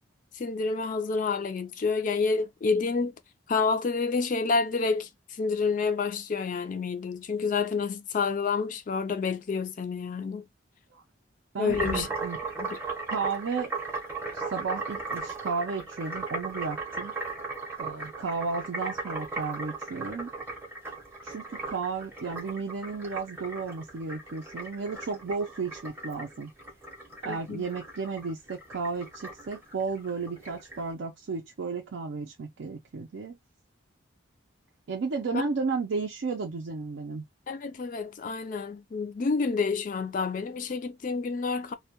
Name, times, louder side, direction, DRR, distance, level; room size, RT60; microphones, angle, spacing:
voice 1, 0.3-3.1 3.5-10.4 11.6-12.1 12.6-12.8 27.2-27.6 35.3-35.4 37.5-41.7, left 4 dB, 40° left, 0.3 m, -29 dB
voice 2, 11.5-12.4 13.1-13.8 14.3-17.1 17.8-20.3 21.2-26.5 27.2-33.4 34.9-37.2, right 4 dB, 65° right, 0.4 m, -33 dB
sound 1, 11.7-30.8, right 3 dB, 10° right, 0.6 m, -37 dB
2.2 x 2.1 x 2.8 m
head